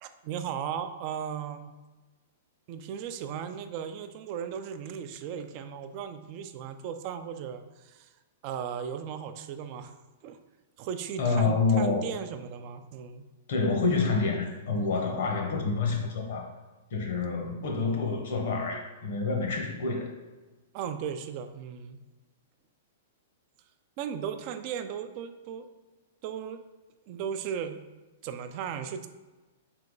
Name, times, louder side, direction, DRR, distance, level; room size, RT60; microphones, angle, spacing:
voice 1, 0.0-1.7 2.7-8.1 8.4-9.9 10.2-10.4 10.8-13.2 20.7-22.0 24.0-25.7 26.2-26.6 27.1-27.8 28.2-29.1, right 8 dB, 45° right, 9 dB, 0.4 m, -36 dB
voice 2, 11.2-12.1 13.5-16.5 16.9-20.1, left 4 dB, 65° left, 2 dB, 0.9 m, -27 dB
3.3 x 2.9 x 3.9 m, 1.2 s
hypercardioid pair, 120°, 0 cm